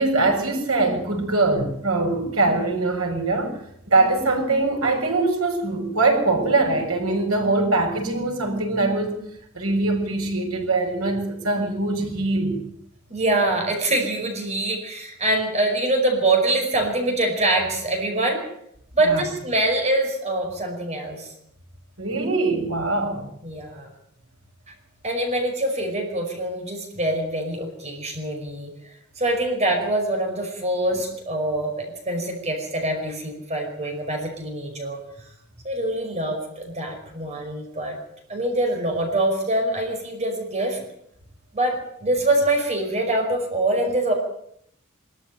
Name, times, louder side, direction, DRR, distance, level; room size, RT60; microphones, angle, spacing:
voice 1, 0.0-3.5 3.9-9.2 9.5-12.6 19.0-19.2 22.0-23.3, right 2 dB, 80° right, 3 dB, 6.3 m, -22 dB
voice 2, 13.1-18.4 18.9-21.3 23.4-23.9 25.0-28.7 29.2-35.3 35.6-38.0 38.3-40.8 41.5-44.1, right 1 dB, 30° right, 3 dB, 5.3 m, -24 dB
23.5 x 14.0 x 9.2 m, 0.72 s
head